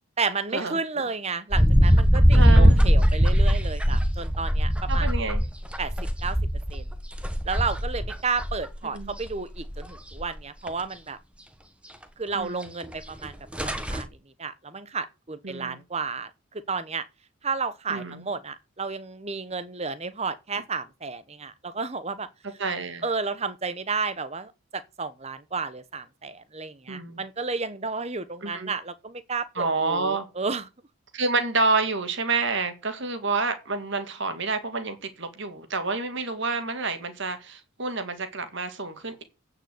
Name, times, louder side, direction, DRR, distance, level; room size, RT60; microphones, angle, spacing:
voice 1, 0.2-5.1 5.8-5.9 6.2-6.4 6.7-6.9 7.4-11.2 12.2-13.4 13.6-14.1 14.4-17.0 17.4-22.3 23.0-30.7, right 4 dB, 30° right, 0.9 m, -32 dB
sound 1, 1.5-8.6 9.0-9.9 10.2-10.3 10.7-10.8 12.8-12.9 13.2-13.3 13.5-14.0, equal, 5° right, 1.1 m, -20 dB
voice 2, 2.3-2.8 4.9-5.4 8.9-9.1 12.3-12.7 15.4-15.8 17.9-18.2 22.6-23.0 26.9-27.2 28.4-28.7 29.6-30.3 31.1-39.2, right 3 dB, 55° right, 1.9 m, -28 dB
8.9 x 6.8 x 7.9 m
head